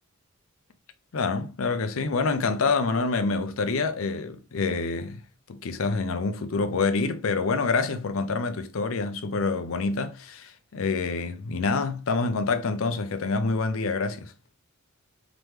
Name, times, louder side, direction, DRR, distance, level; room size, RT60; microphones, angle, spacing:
voice 1, 1.1-5.2 5.6-14.3, left 4 dB, 70° left, 0.5 m, -27 dB
3.7 x 3.0 x 3.1 m
head